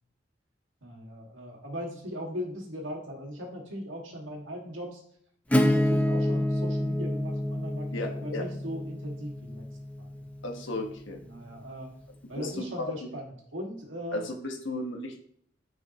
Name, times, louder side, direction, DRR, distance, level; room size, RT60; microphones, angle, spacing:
voice 1, 0.8-5.0 5.5-9.6 10.0-10.3 11.2-11.9 12.3-14.2, equal, 85° right, 0 dB, 2.0 m, -39 dB
Acoustic guitar / Strum, 5.5-11.0, left 1 dB, 5° left, 0.5 m, -28 dB
voice 2, 7.9-8.4 10.4-11.2 12.2-12.9 14.1-15.2, left 2 dB, 80° left, 3 dB, 1.4 m, -34 dB
9.4 x 5.5 x 3.0 m, 0.63 s
head